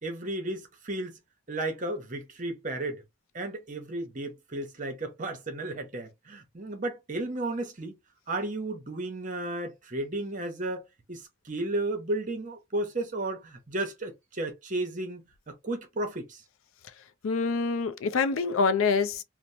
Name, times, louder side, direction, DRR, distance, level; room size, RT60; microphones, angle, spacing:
voice 1, 0.0-1.2 1.5-3.0 3.3-8.0 8.3-10.8 11.1-16.4, right 2 dB, 40° right, 0.7 m, -33 dB
voice 2, 17.2-19.2, left 4 dB, 80° left, 0.4 m, -26 dB
2.9 x 2.0 x 2.6 m
head